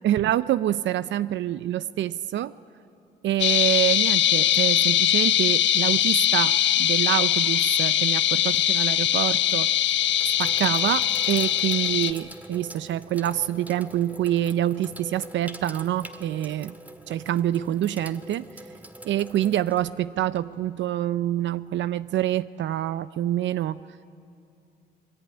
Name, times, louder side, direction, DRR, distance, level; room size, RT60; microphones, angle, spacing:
voice 1, 0.0-2.5 3.2-6.5 6.8-9.7 10.4-16.7 17.1-18.4 19.1-23.8, right 12 dB, 70° right, 15 dB, 0.5 m, -26 dB
sound 1, 3.4-12.1, left 11 dB, 70° left, 0.8 m, -22 dB
Sink (filling or washing), 9.0-9.1 9.8-20.7, right 1 dB, 10° right, 1.7 m, -44 dB
26.0 x 20.0 x 9.6 m, 2.6 s
cardioid pair, 90°, 20 cm